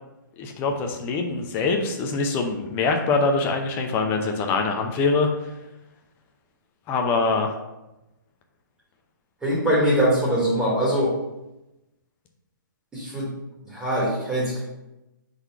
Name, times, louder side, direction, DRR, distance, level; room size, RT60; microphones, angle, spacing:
voice 1, 0.4-5.5 6.9-7.5, left 4 dB, 20° left, 3 dB, 0.6 m, -24 dB
voice 2, 9.4-11.1 12.9-13.3 13.7-14.6, equal, 10° right, -7 dB, 1.4 m, -22 dB
4.5 x 3.9 x 5.5 m, 0.96 s
figure-of-eight pair, 130°, 11 cm